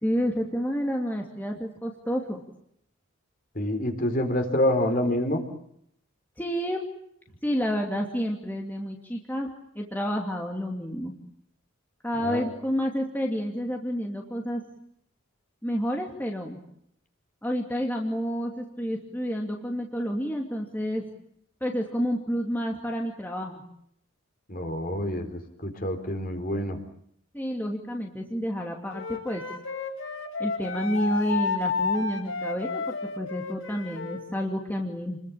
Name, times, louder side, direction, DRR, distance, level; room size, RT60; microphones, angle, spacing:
voice 1, 0.0-2.4 6.4-6.8 7.4-11.1 12.0-14.6 15.6-16.6 17.4-21.1 21.6-23.6 27.3-29.4 30.4-35.2, equal, 10° left, 0 dB, 2.7 m, -29 dB
voice 2, 3.5-5.4 12.2-12.5 24.5-26.8, left 1 dB, 40° left, 6 dB, 4.4 m, -27 dB
Wind instrument woodwind instrument, 28.9-34.2, left 4 dB, 65° left, 6.9 m, -31 dB
30.0 x 22.0 x 8.8 m, 0.72 s
head